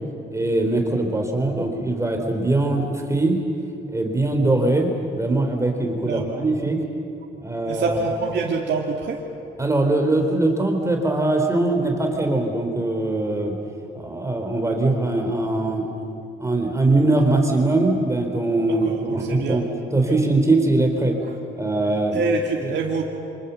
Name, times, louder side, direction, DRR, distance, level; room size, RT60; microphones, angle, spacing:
voice 1, 0.3-3.4 3.9-6.8 7.4-8.0 9.6-13.5 13.9-15.9 16.4-21.2 21.6-22.2 22.6-22.7, right 2 dB, 15° right, 3 dB, 3.7 m, -21 dB
voice 2, 6.1-6.5 7.7-9.2 18.8-19.0 19.3-19.6 20.0-20.1 22.1-23.0, right 4 dB, 60° right, -2 dB, 2.4 m, -25 dB
27.5 x 25.0 x 6.9 m, 2.7 s
cardioid pair, 90°, 20 cm